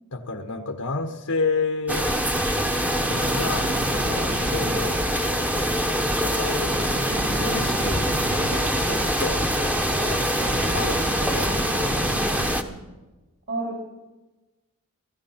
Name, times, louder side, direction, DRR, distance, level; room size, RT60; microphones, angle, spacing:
voice 1, 0.1-2.1 3.3-3.7 4.1-5.0 6.2-6.7 7.3-8.1 8.4-10.3 10.7-11.5, left 3 dB, 80° left, 2 dB, 1.5 m, -30 dB
sound 1, 1.9-12.6, equal, 5° right, 1.0 m, -24 dB
sound 2, 3.0-4.9 6.7-8.6 10.4-12.2, right 2 dB, 75° right, 1.7 m, -34 dB
voice 2, 7.1-7.4 12.1-12.8 13.5-13.8, right 2 dB, 60° right, -2 dB, 4.0 m, -33 dB
17.5 x 14.0 x 5.9 m, 1.1 s
head